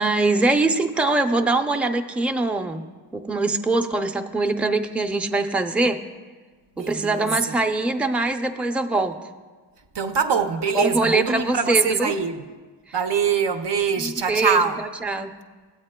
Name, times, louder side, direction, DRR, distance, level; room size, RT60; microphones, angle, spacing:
voice 1, 0.0-2.8 3.1-6.0 6.8-9.2 10.7-12.2 12.9-13.0 14.0-14.6 15.0-15.3, right 2 dB, 5° right, 0.5 m, -23 dB
voice 2, 6.8-7.6 9.9-12.4 12.9-14.8, right 6 dB, 70° right, 0.7 m, -23 dB
15.0 x 8.1 x 2.2 m
cardioid pair, 50°, 43 cm